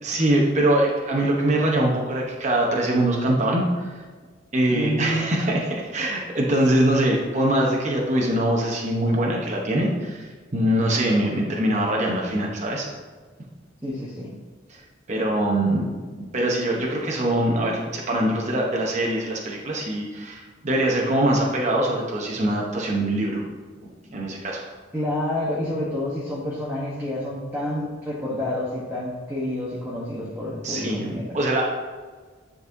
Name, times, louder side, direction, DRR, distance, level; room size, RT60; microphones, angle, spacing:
voice 1, 0.0-4.0 4.5-12.9 15.1-15.9 16.3-23.4 24.1-24.6 30.6-31.1 31.3-31.7, right 1 dB, 35° right, -2 dB, 0.8 m, -23 dB
voice 2, 4.7-5.4 13.8-14.3 15.6-15.9 24.9-31.4, left 1 dB, 10° right, -7 dB, 1.0 m, -29 dB
9.6 x 4.1 x 2.6 m, 1.4 s
head